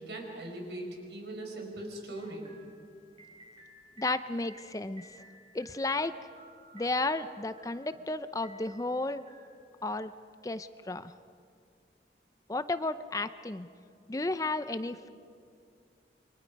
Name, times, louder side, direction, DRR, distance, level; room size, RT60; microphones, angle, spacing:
voice 1, 0.0-2.5, right 1 dB, 75° right, 2 dB, 5.2 m, -40 dB
sound 1, 2.1-10.0, right 1 dB, 30° right, 3.6 m, -57 dB
voice 2, 4.0-5.0 5.5-6.1 6.7-9.2 9.8-10.1 10.4-11.1 12.5-13.7 14.1-15.1, left 2 dB, 20° left, 12 dB, 0.5 m, -33 dB
29.0 x 24.0 x 5.3 m, 2.3 s
head